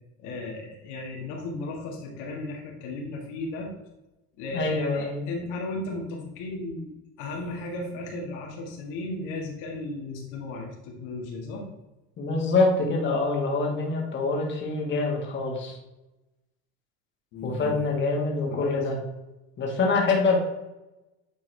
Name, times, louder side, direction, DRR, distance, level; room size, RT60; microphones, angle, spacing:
voice 1, 0.2-3.7 4.4-11.6 17.3-17.8 18.5-18.8, left 2 dB, 70° left, -1 dB, 1.8 m, -35 dB
voice 2, 4.5-5.3 12.2-15.8 17.4-19.0 19.6-20.4, left 3 dB, 35° left, -1 dB, 1.7 m, -25 dB
9.2 x 3.6 x 3.4 m, 1.0 s
supercardioid pair, 100°, 32 cm